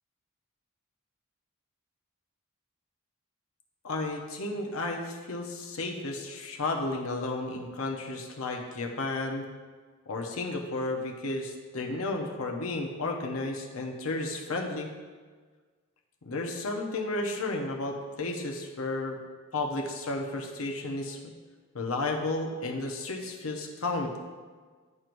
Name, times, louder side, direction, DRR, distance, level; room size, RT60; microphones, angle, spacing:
voice 1, 3.8-9.4 10.1-14.9 16.2-19.2 19.5-21.3 21.7-24.2, left 2 dB, 80° left, 1 dB, 0.8 m, -33 dB
11.0 x 4.5 x 2.6 m, 1.5 s
head